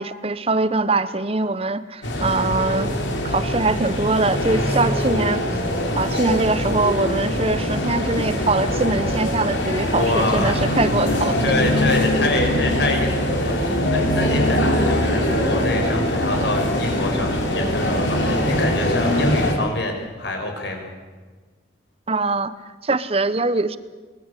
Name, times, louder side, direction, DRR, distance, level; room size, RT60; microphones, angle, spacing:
voice 1, 0.0-2.9 3.2-5.4 6.0-11.4 22.1-22.5 22.8-23.8, right 3 dB, 30° right, 14 dB, 0.9 m, -22 dB
sound 1, 2.0-19.5, left 1 dB, 90° left, 4.4 m, -22 dB
voice 2, 9.9-10.8 11.4-20.9, left 1 dB, 65° left, 3 dB, 5.5 m, -25 dB
23.5 x 19.5 x 8.3 m, 1.4 s
head